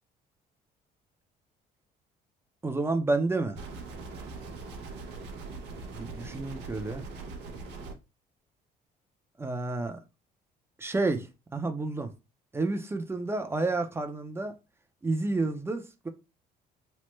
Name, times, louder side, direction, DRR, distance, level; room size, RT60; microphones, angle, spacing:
voice 1, 2.6-3.6 5.9-7.0 9.4-10.0 10.8-11.3 11.5-12.1 12.5-14.5 15.0-16.1, right 3 dB, 15° right, 0.5 m, -30 dB
sound 1, 3.6-7.9, right 3 dB, 85° right, 0.7 m, -41 dB
3.2 x 2.1 x 3.0 m
cardioid pair, 110°, 17 cm